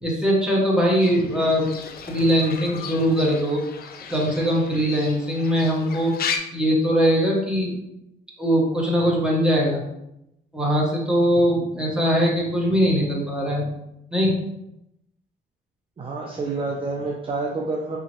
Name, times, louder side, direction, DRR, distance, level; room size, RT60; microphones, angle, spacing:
voice 1, 0.0-1.8 2.1-3.6 4.1-6.1 6.5-7.8 8.4-9.8 10.5-13.7 14.1-14.3, equal, 5° right, -4 dB, 1.2 m, -21 dB
Fowl / Bird, 1.0-6.4, left 6 dB, 50° left, 0.5 m, -35 dB
voice 2, 16.0-18.0, right 3 dB, 25° right, -1 dB, 0.5 m, -28 dB
3.7 x 2.9 x 2.9 m, 0.84 s
cardioid pair, 90°, 20 cm